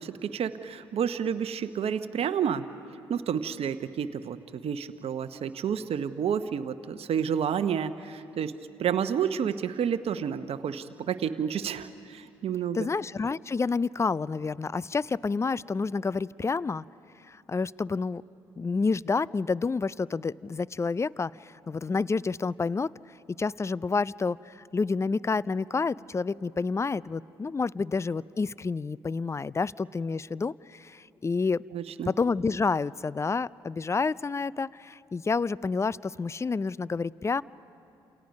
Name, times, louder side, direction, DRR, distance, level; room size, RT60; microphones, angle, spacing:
voice 1, 0.0-2.7 3.1-8.5 8.8-12.9 31.7-32.1, right 8 dB, 55° right, 10 dB, 1.0 m, -30 dB
voice 2, 12.7-16.8 17.3-18.2 18.6-22.9 23.4-31.6 32.1-37.4, left 4 dB, 25° left, 22 dB, 0.5 m, -29 dB
29.5 x 28.5 x 5.3 m, 2.7 s
hypercardioid pair, 50°, 12 cm